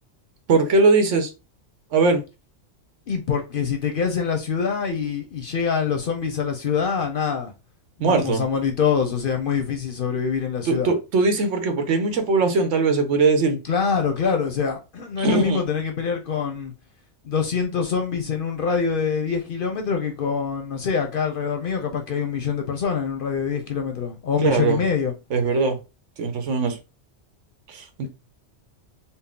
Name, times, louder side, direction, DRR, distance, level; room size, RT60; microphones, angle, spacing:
voice 1, 0.5-1.3 1.9-2.2 8.0-8.4 10.7-13.6 15.2-15.6 24.4-24.8 25.3-25.8 26.2-26.8 27.7-28.1, right 3 dB, 85° right, 1.1 m, -20 dB
voice 2, 3.1-7.5 8.0-10.9 13.7-16.7 17.2-25.1, left 6 dB, 55° left, 0.7 m, -25 dB
4.1 x 2.0 x 3.6 m
omnidirectional pair, 1.2 m